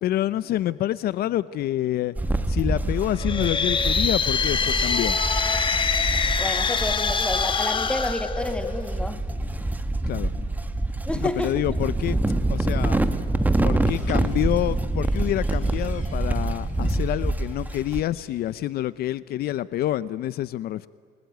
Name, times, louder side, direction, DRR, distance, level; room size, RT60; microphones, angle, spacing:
voice 1, 0.0-2.1 2.5-5.2 10.1-10.5 11.2-12.2 12.5-13.0 13.6-20.9, left 13 dB, 65° left, 17 dB, 0.6 m, -27 dB
sound 1, 2.2-18.0, right 2 dB, 10° right, 1.5 m, -26 dB
sound 2, 3.1-9.0, left 5 dB, 30° left, 1.3 m, -25 dB
voice 2, 6.4-9.2 11.1-11.5, left 1 dB, 5° left, 9 dB, 1.9 m, -30 dB
sound 3, 13.7-18.7, left 5 dB, 45° left, 5.5 m, -49 dB
28.5 x 21.0 x 9.3 m, 2.3 s
cardioid pair, 110°, 17 cm